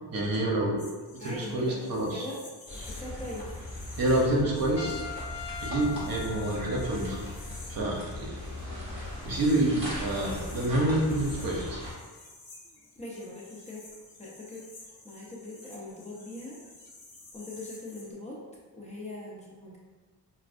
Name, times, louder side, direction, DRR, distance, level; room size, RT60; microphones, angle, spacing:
voice 1, 0.1-0.9 1.2-2.2 4.0-5.0 5.6-7.2 7.7-8.4 9.2-11.8, right 1 dB, 55° right, -2 dB, 0.9 m, -28 dB
sound 1, 0.8-18.1, left 2 dB, 55° left, 1.0 m, -51 dB
voice 2, 1.2-2.4 3.0-3.5 5.8-6.0 13.0-13.8 14.2-16.6 17.3-18.4 18.7-19.8, left 2 dB, 15° left, -5 dB, 0.7 m, -41 dB
sound 2, 2.7-11.9, left 1 dB, 15° right, 1.4 m, -39 dB
Trumpet, 4.8-7.4, left 6 dB, 85° left, 0.6 m, -41 dB
5.7 x 2.2 x 2.6 m, 1.3 s
wide cardioid pair, 125°, 41 cm